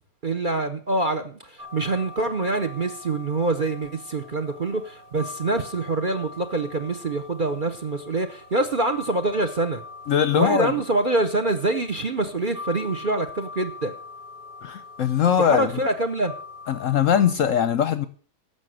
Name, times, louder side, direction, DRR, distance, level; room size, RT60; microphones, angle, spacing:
voice 1, 0.2-9.8 10.4-13.9 15.4-16.3, right 2 dB, 40° right, 0.8 m, -25 dB
sound 1, 1.6-17.3, left 3 dB, 90° right, 4.0 m, -43 dB
voice 2, 10.1-10.7 14.6-15.7 16.7-18.1, left 8 dB, 60° left, 0.9 m, -21 dB
11.0 x 7.1 x 7.6 m
omnidirectional pair, 1.8 m